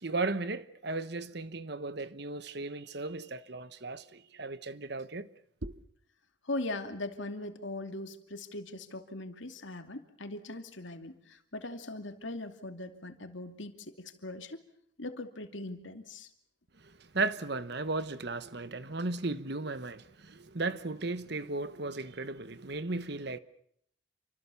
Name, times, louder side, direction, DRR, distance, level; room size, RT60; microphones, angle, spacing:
voice 1, 0.0-5.3 5.6-5.7 17.1-23.4, right 3 dB, 55° right, 1.1 m, -35 dB
voice 2, 6.4-14.6 15.0-16.3, left 2 dB, 70° left, 2.6 m, -40 dB
29.0 x 25.5 x 7.0 m
head